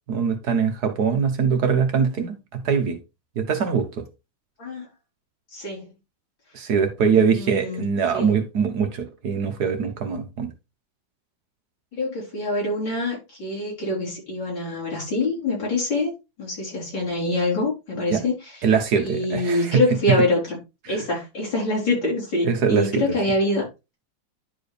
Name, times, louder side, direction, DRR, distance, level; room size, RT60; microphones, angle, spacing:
voice 1, 0.1-3.0 3.4-4.0 6.5-10.5 18.1-18.2 18.6-19.8 20.1-20.2 20.9-21.0 22.4-23.2, right 6 dB, 60° right, 1.5 m, -22 dB
voice 2, 5.5-5.9 7.1-7.8 8.1-8.3 11.9-16.1 16.4-18.3 19.0-20.6 20.9-23.6, left 2 dB, 80° left, 5.2 m, -25 dB
11.0 x 4.6 x 3.3 m
omnidirectional pair, 2.0 m